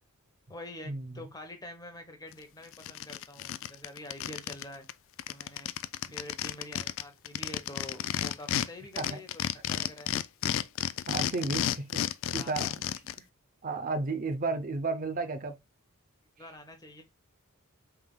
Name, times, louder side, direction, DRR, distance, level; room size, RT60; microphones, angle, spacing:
voice 1, 0.5-4.9 5.3-5.7 6.1-10.1 12.2-12.7 16.4-17.0, left 1 dB, 20° left, 1.0 m, -46 dB
sound 1, 2.3-2.4 2.7-4.6 4.9-5.0 5.2-8.7 9.0-13.2, left 10 dB, 60° left, 0.3 m, -32 dB
voice 2, 11.1-12.0 12.3-12.7 13.6-15.6, right 3 dB, 40° right, 0.6 m, -33 dB
5.6 x 3.4 x 2.2 m
head